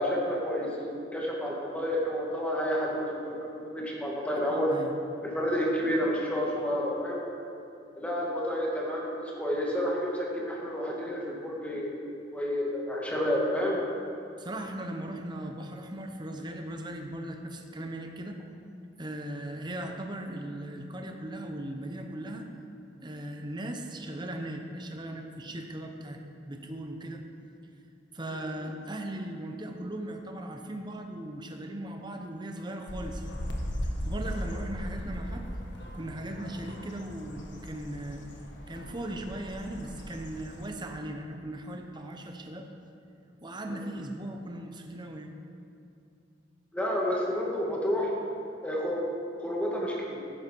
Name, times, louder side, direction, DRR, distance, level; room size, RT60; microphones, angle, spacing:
voice 1, 0.0-4.7 5.2-7.2 8.0-12.0 12.3-13.8 43.7-43.8 46.7-48.1 48.6-49.0 49.4-50.2, equal, 10° left, -4 dB, 2.1 m, -30 dB
voice 2, 4.5-4.9 14.4-18.4 19.0-22.5 23.0-26.2 26.4-27.2 28.1-33.4 34.0-35.5 35.9-38.2 38.7-42.7 43.4-45.3, right 1 dB, 25° right, 3 dB, 0.9 m, -38 dB
sound 1, 32.9-40.7, equal, 80° left, 1.5 m, -38 dB
13.0 x 11.0 x 4.6 m, 2.5 s
head